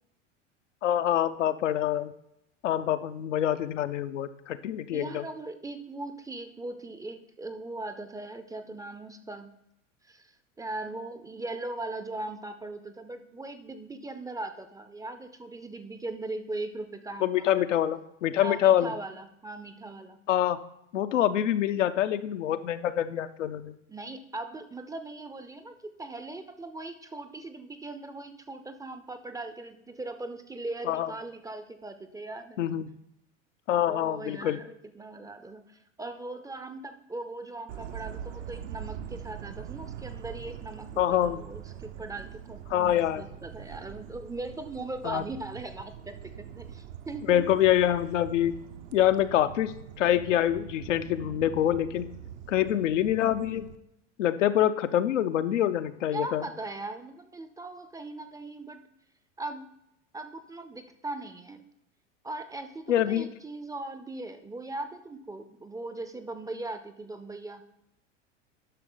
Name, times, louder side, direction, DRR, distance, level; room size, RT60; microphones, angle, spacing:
voice 1, 0.8-2.1 2.6-5.2 17.2-18.9 20.3-20.6 20.9-23.7 30.9-31.1 32.6-32.9 33.7-34.6 41.0-41.4 42.7-43.2 45.0-45.2 47.3-48.5 48.9-52.1 52.5-53.7 54.2-56.5 62.9-63.3, left 11 dB, 80° left, 10 dB, 0.7 m, -25 dB
voice 2, 4.9-9.5 10.0-10.3 10.6-17.8 18.4-20.2 23.9-32.6 33.9-47.5 56.1-58.8 59.4-59.7 60.1-61.6 62.2-67.6, right 2 dB, 10° right, 9 dB, 0.5 m, -39 dB
gafarró pineda, 37.7-53.8, right 9 dB, 65° right, 0.8 m, -43 dB
10.0 x 6.1 x 3.8 m, 0.78 s
hypercardioid pair, 90°, 37 cm